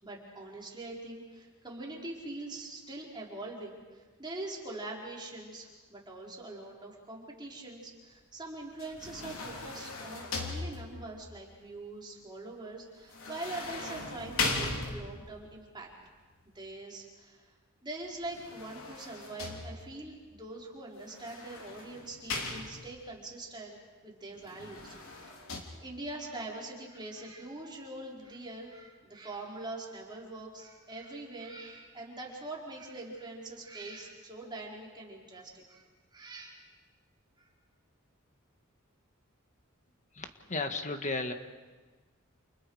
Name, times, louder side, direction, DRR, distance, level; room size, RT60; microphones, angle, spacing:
voice 1, 0.0-15.9 16.4-17.5 17.8-23.8 24.0-24.9 25.8-35.9 36.1-36.6 37.4-37.5, right 2 dB, 20° right, -3 dB, 4.5 m, -43 dB
sound 1, 8.8-11.2 13.1-15.4 18.2-20.1 21.1-23.1 24.4-25.6, left 3 dB, 80° left, 3.5 m, -38 dB
voice 2, 40.1-41.3, left 3 dB, 35° left, 6 dB, 1.7 m, -34 dB
29.5 x 29.0 x 4.9 m, 1.3 s
head